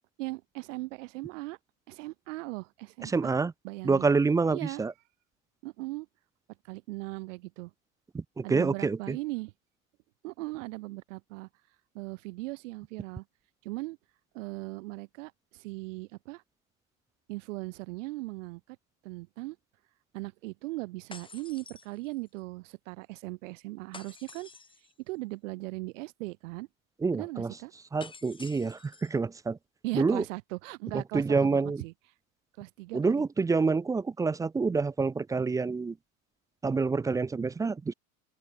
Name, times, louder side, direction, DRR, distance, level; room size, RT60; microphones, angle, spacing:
voice 1, 0.2-1.6 1.9-3.3 3.6-4.1 4.5-4.8 5.6-6.1 6.6-7.7 8.4-9.5 10.2-11.5 11.9-13.2 13.6-14.0 14.3-16.4 17.3-18.8 19.0-19.6 20.1-24.5 25.1-26.7 27.1-27.7 29.8-31.9 32.6-33.2, right 22 dB, 60° right, 1.2 m, -38 dB
voice 2, 3.0-3.5 3.8-4.9 8.1-9.2 27.0-27.6 27.9-29.6 29.9-30.2 30.9-31.8 32.9-36.0 36.6-37.9, right 4 dB, 10° right, 0.4 m, -27 dB
sound 1, 21.1-22.4 23.9-24.9 28.0-29.2, left 4 dB, 10° left, 1.5 m, -49 dB
open air
hypercardioid pair, 85°, 41 cm